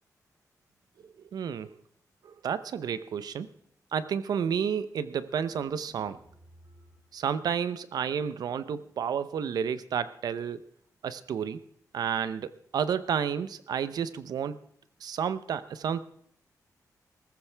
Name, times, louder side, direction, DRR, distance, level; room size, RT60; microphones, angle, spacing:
voice 1, 1.0-1.7 2.2-3.5 3.9-6.2 7.1-8.7 9.0-10.6 11.0-11.6 11.9-14.6 15.0-16.0, right 7 dB, 85° right, 14 dB, 0.7 m, -31 dB
sound 1, 5.4-7.2, right 1 dB, 35° right, 2.6 m, -57 dB
19.5 x 14.5 x 3.4 m, 0.63 s
wide cardioid pair, 170°, 7 cm